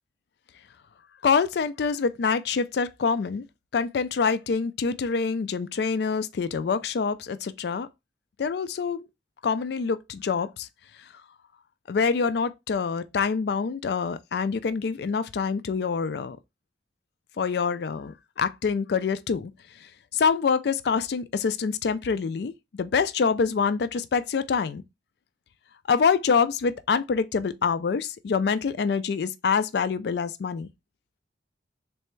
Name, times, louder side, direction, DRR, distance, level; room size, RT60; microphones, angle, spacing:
voice 1, 1.2-3.5 3.7-7.9 8.4-9.1 9.4-10.7 11.9-16.4 17.4-19.5 20.1-24.8 25.9-30.7, left 5 dB, 60° left, 0.3 m, -26 dB
3.4 x 3.2 x 3.0 m
head